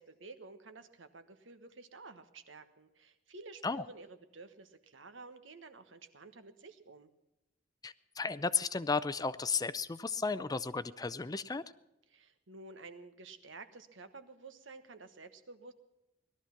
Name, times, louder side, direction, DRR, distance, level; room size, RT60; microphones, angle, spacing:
voice 1, 0.0-7.1 12.1-15.7, right 3 dB, 80° right, 9 dB, 1.3 m, -52 dB
voice 2, 7.8-11.6, left 4 dB, 20° left, 15 dB, 0.5 m, -34 dB
18.5 x 12.5 x 5.9 m, 0.93 s
head